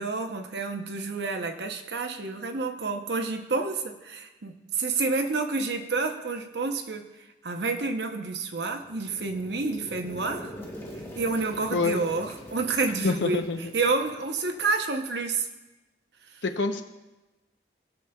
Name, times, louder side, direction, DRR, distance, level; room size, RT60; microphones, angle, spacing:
voice 1, 0.0-7.0 7.4-10.5 11.2-13.4 13.7-15.5, right 3 dB, 70° right, 5 dB, 0.8 m, -29 dB
sound 1, 8.7-14.6, equal, 15° left, 1.0 m, -44 dB
voice 2, 11.7-12.0 13.0-13.7 16.4-16.8, left 3 dB, 85° left, 7 dB, 0.8 m, -26 dB
18.5 x 6.6 x 2.3 m, 1.1 s
head